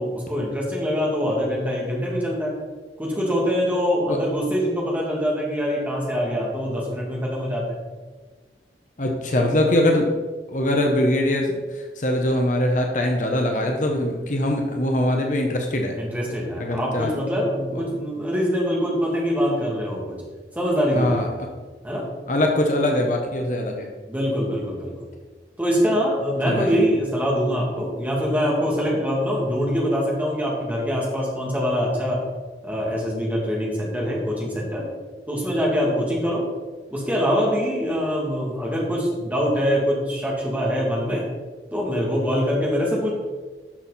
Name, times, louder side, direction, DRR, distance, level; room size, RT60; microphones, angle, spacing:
voice 1, 0.0-2.5 3.0-7.8 16.0-20.2 20.5-21.2 21.8-22.1 24.1-25.1 25.6-32.2 32.6-34.8 35.3-36.4 36.9-41.2 41.7-43.1, equal, 10° right, -4 dB, 2.5 m, -24 dB
voice 2, 9.0-10.1 10.5-11.5 12.0-16.0 16.6-17.1 21.0-21.3 22.3-23.9 26.5-26.7, left 1 dB, 45° left, 2 dB, 1.0 m, -22 dB
12.0 x 6.4 x 4.3 m, 1.3 s
head